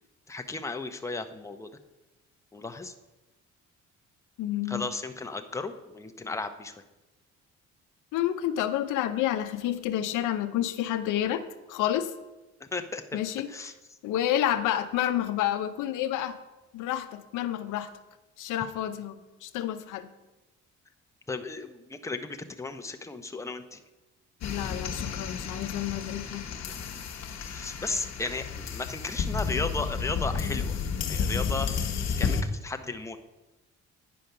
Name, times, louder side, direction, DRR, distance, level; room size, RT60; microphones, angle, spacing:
voice 1, 0.3-1.7 2.5-2.9 4.7-6.7 12.6-13.0 13.5-13.7 21.3-23.8 27.5-30.8 31.0-31.9 32.2-33.2, left 3 dB, 10° left, 7 dB, 0.6 m, -35 dB
voice 2, 4.4-4.9 8.1-12.1 13.1-13.7 14.0-16.4 16.7-17.9 18.4-20.1 24.4-26.5, left 11 dB, 90° left, 10 dB, 0.6 m, -29 dB
sound 1, 24.4-32.4, left 6 dB, 60° left, 1.0 m, -32 dB
9.4 x 5.1 x 5.7 m, 1.1 s
cardioid pair, 90°, 30 cm